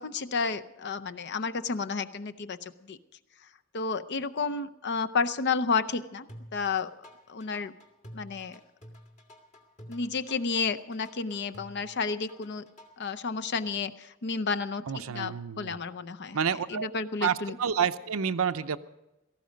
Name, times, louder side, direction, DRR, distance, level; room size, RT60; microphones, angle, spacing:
voice 1, 0.0-2.6 2.9-3.0 3.7-6.3 6.5-6.9 7.3-7.7 8.1-8.6 9.9-12.6 13.0-16.4 16.7-17.6, left 4 dB, 55° left, 11 dB, 0.6 m, -31 dB
sound 1, 6.3-13.1, equal, 35° left, 1.9 m, -49 dB
voice 2, 14.9-15.8 16.3-16.9 17.2-18.8, right 7 dB, 80° right, 12 dB, 0.6 m, -29 dB
17.5 x 14.5 x 5.1 m, 0.97 s
head